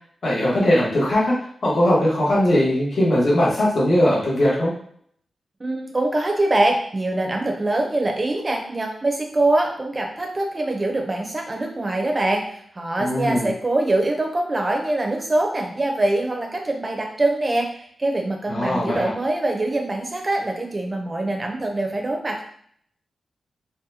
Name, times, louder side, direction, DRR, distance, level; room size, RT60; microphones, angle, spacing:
voice 1, 0.2-1.3 1.6-4.7 13.0-13.5 18.5-19.1, left 1 dB, 55° left, -7 dB, 1.2 m, -19 dB
voice 2, 5.6-12.4 12.7-22.4, right 2 dB, 25° right, 2 dB, 0.6 m, -23 dB
4.0 x 2.2 x 2.7 m, 0.63 s
wide cardioid pair, 110°, 0 cm